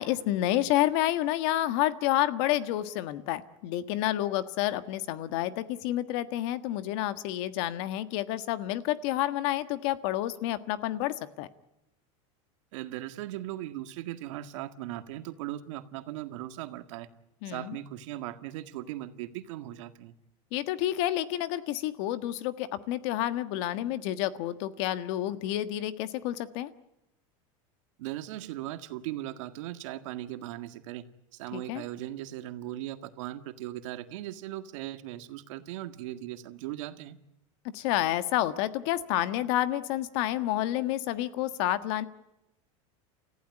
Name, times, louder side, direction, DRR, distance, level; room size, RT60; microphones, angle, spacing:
voice 1, 0.0-11.5 17.4-17.8 20.5-26.7 31.5-31.8 37.7-42.0, left 14 dB, 65° left, 12 dB, 1.5 m, -29 dB
voice 2, 12.7-17.1 17.5-20.1 28.0-31.0 31.3-37.2, right 14 dB, 75° right, 9 dB, 1.8 m, -38 dB
29.5 x 15.0 x 9.7 m, 0.92 s
supercardioid pair, 140°, 16 cm